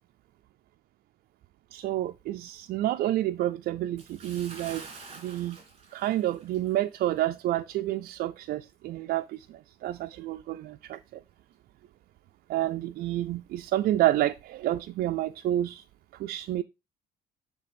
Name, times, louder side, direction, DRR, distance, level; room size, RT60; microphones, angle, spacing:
voice 1, 1.7-4.9 5.1-5.6 5.9-11.2 12.5-15.8 16.1-16.6, right 13 dB, 65° right, 0.4 m, -29 dB
Bathtub (filling or washing) / Splash splatter, 4.0-6.8 7.2-7.3 7.9-8.0, right 4 dB, 35° right, 2.5 m, -47 dB
9.9 x 3.4 x 5.1 m
cardioid pair, 110°, 17 cm